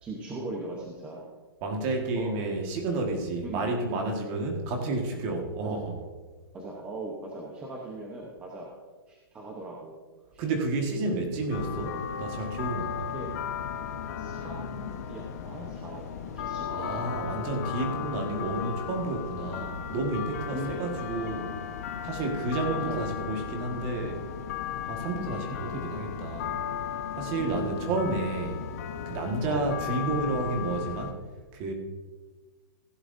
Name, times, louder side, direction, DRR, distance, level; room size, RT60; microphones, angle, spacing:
voice 1, 0.0-1.2 2.2-2.5 3.4-3.7 5.6-5.7 6.5-8.7 9.1-9.9 10.3-10.4 11.2-11.3 13.1-13.3 14.2-17.1 20.5-20.9 22.8-23.0 25.3-25.8 27.4-27.6 29.5-29.7, right 2 dB, 10° right, -2 dB, 0.9 m, -39 dB
voice 2, 1.6-6.0 10.4-13.1 16.7-21.5 22.0-24.2 24.7-26.6 27.1-28.6 29.0-31.2 31.5-31.7, right 2 dB, 25° right, 2 dB, 1.6 m, -31 dB
sound 1, 11.5-31.1, left 9 dB, 40° left, 0.9 m, -36 dB
16.0 x 11.0 x 2.6 m, 1.4 s
hypercardioid pair, 175°, 12 cm